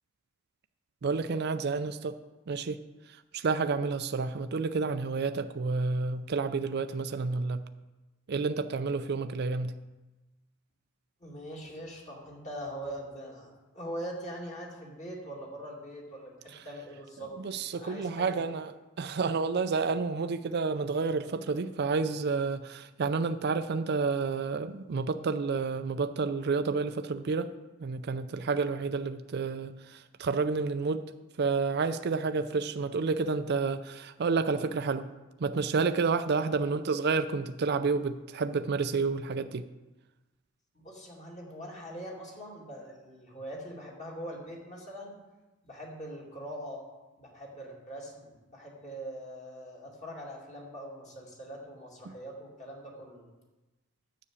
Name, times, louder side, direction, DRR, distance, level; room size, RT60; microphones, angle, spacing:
voice 1, 1.0-2.2 2.5-2.8 3.3-7.6 8.3-9.7 17.4-18.7 19.0-27.5 27.8-29.7 30.2-31.0 31.4-35.1 35.4-39.6, right 4 dB, 50° right, 10 dB, 0.4 m, -30 dB
voice 2, 11.2-18.4 36.3-36.6 40.7-45.2 45.6-46.8 47.2-53.2, equal, 35° left, -2 dB, 2.5 m, -42 dB
10.0 x 6.0 x 8.2 m, 1.1 s
head